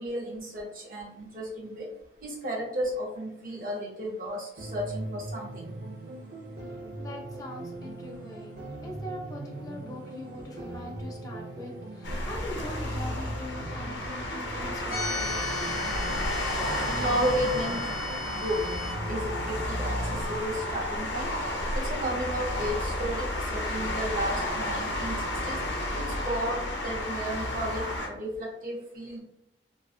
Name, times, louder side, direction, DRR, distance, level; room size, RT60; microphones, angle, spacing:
voice 1, 0.0-1.9 2.2-5.7 16.8-17.8 18.3-18.7 19.1-21.3 21.7-25.6 25.9-29.2, equal, 50° right, -3 dB, 0.7 m, -33 dB
sound 1, 4.6-20.6, right 2 dB, 85° right, 0.6 m, -40 dB
voice 2, 7.0-15.4 15.9-16.0, left 1 dB, 20° left, -2 dB, 0.4 m, -42 dB
sound 2, 12.0-28.1, left 1 dB, 90° left, 0.5 m, -32 dB
sound 3, 14.9-18.9, left 2 dB, 50° left, 0.7 m, -37 dB
2.4 x 2.3 x 2.3 m, 0.80 s
head